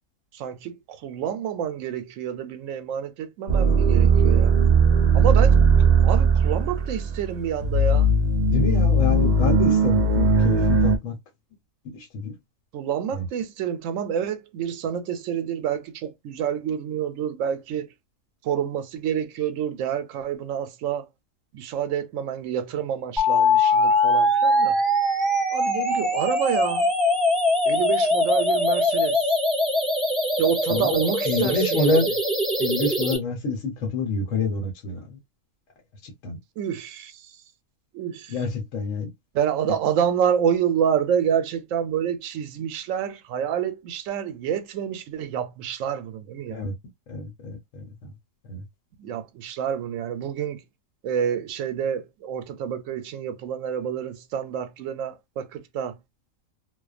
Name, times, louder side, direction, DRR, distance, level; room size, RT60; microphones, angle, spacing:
voice 1, 0.3-4.6 5.1-8.1 12.7-17.9 18.4-21.1 21.5-24.8 25.5-26.9 27.7-29.2 30.4-31.9 36.6-37.2 37.9-38.3 39.3-46.7 49.0-50.6 51.0-56.0, right 8 dB, 80° right, 0.9 m, -28 dB
sound 1, 3.5-11.0, right 3 dB, 50° right, 0.5 m, -18 dB
voice 2, 8.5-11.2 11.8-12.3 13.1-13.2 30.7-32.1 32.6-35.2 36.0-36.4 38.3-39.1 46.5-46.7 47.1-48.1 48.5-48.6, left 3 dB, 80° left, 1.2 m, -27 dB
sound 2, 23.2-33.2, left 1 dB, ahead, 0.5 m, -22 dB
2.4 x 2.2 x 2.3 m
omnidirectional pair, 1.3 m